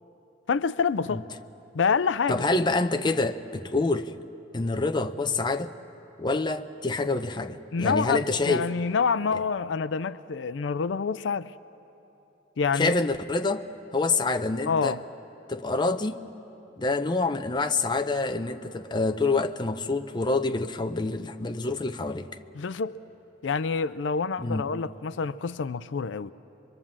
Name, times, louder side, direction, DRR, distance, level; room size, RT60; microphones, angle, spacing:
voice 1, 0.5-1.2 1.7-2.4 7.7-11.5 12.6-12.9 14.7-15.0 22.5-22.9 23.4-26.3, left 5 dB, 90° left, 0.5 m, -27 dB
voice 2, 2.3-4.1 4.5-5.7 6.2-8.7 12.8-13.7 13.9-15.0 15.5-16.2 16.8-22.3 24.4-24.6, left 3 dB, 25° left, 0.6 m, -27 dB
24.0 x 23.0 x 7.4 m
head